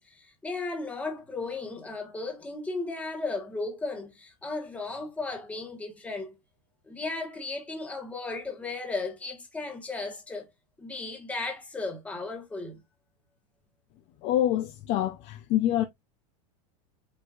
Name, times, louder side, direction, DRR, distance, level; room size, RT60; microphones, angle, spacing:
voice 1, 0.0-6.4 6.9-10.5 10.8-12.8, left 3 dB, 5° left, 1.1 m, -35 dB
voice 2, 14.2-15.8, left 12 dB, 35° left, 0.4 m, -26 dB
4.5 x 4.1 x 2.3 m
supercardioid pair, 160°, 19 cm